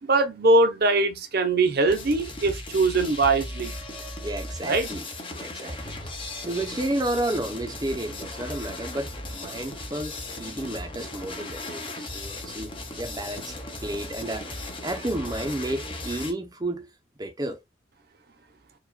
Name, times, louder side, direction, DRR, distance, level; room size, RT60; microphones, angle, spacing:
voice 1, 0.0-3.7 4.7-4.9, right 2 dB, 55° right, 0.8 m, -22 dB
sound 1, 1.9-16.3, left 2 dB, 25° left, 0.9 m, -37 dB
voice 2, 4.2-5.0 5.3-6.1 6.4-13.5 13.8-14.5 14.8-16.9 17.2-17.6, right 1 dB, 20° right, 0.7 m, -31 dB
4.7 x 2.5 x 2.3 m
head